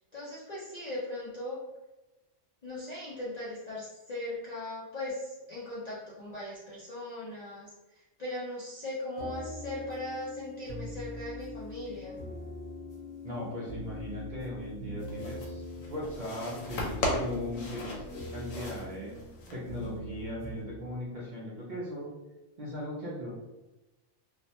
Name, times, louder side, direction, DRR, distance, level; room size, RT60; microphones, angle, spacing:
voice 1, 0.0-1.6 2.6-12.2, left 1 dB, 60° left, -8 dB, 0.4 m, -39 dB
sound 1, 9.2-20.6, left 1 dB, 35° left, 0.9 m, -42 dB
voice 2, 13.2-18.0 18.3-19.1 19.5-22.1 22.6-23.3, left 1 dB, 55° right, -6 dB, 0.5 m, -38 dB
sound 2, 15.0-20.0, left 2 dB, 85° left, 1.0 m, -37 dB
2.5 x 2.1 x 2.7 m, 1.0 s
omnidirectional pair, 1.3 m